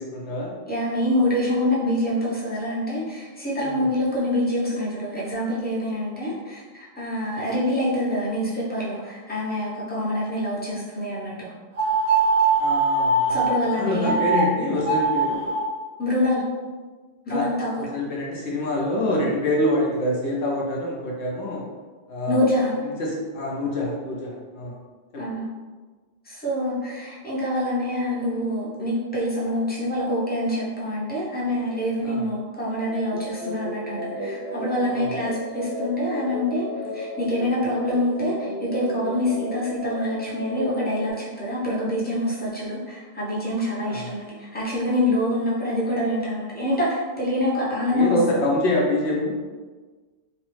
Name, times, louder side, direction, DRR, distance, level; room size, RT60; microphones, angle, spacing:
voice 1, 0.0-0.5 3.6-3.9 12.6-15.4 17.3-17.5 17.7-21.6 22.1-22.4 22.8-24.7 25.1-25.2 32.0-32.3 34.9-35.2 43.8-44.1 47.9-49.4, left 1 dB, 80° left, -3 dB, 1.0 m, -26 dB
voice 2, 0.7-11.5 13.3-14.2 16.0-16.4 17.3-17.9 22.3-22.8 25.2-25.5 26.3-36.7 36.9-48.4, left 1 dB, 10° left, -6 dB, 0.5 m, -26 dB
sound 1, 11.8-13.6 14.0-14.4 14.8-15.6, right 3 dB, 75° right, 0.9 m, -21 dB
sound 2, 32.9-41.1, left 1 dB, 40° left, 0.9 m, -33 dB
3.0 x 2.0 x 3.1 m, 1.4 s
omnidirectional pair, 1.1 m